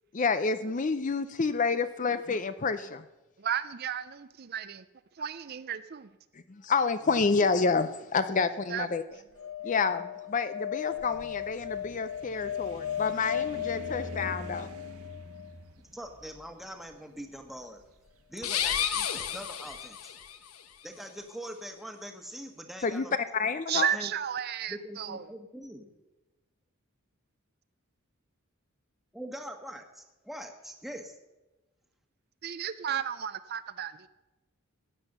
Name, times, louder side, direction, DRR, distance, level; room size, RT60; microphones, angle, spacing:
voice 1, 0.1-3.0 6.6-9.0 9.6-14.7 22.8-23.1 23.3-23.9, left 4 dB, 35° left, 12 dB, 0.5 m, -29 dB
voice 2, 3.4-4.8 5.2-6.1 8.7-8.9 9.4-9.5 23.7-25.2 32.4-34.1, right 9 dB, 45° right, 12 dB, 0.5 m, -33 dB
sound 1, 9.3-15.5 17.8-17.9 18.1-18.2, left 10 dB, 65° left, 1.0 m, -36 dB
sound 2, 10.9-18.0, equal, 85° right, 1.7 m, -46 dB
voice 3, 15.9-17.8 18.3-20.1 20.8-23.1 23.7-24.1 24.7-25.9 29.1-31.1, equal, ahead, 4 dB, 1.3 m, -43 dB
sound 3, 18.4-20.4, left 9 dB, 85° left, 1.1 m, -31 dB
16.0 x 9.1 x 6.7 m, 1.1 s
head